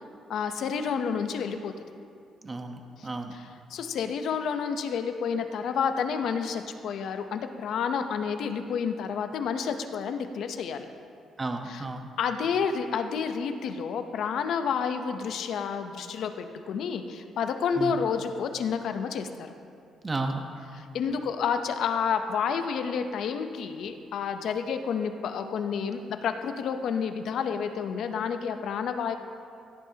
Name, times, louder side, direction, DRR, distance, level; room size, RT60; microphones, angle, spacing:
voice 1, 0.3-1.7 3.7-10.9 11.7-11.8 12.2-19.5 20.9-29.1, left 6 dB, 70° left, 7 dB, 0.8 m, -30 dB
voice 2, 2.4-3.3 11.4-12.1 17.8-18.1 20.0-20.4, right 2 dB, 25° right, 5 dB, 1.0 m, -33 dB
16.5 x 11.5 x 2.9 m, 2.4 s
cardioid pair, 90°, 0 cm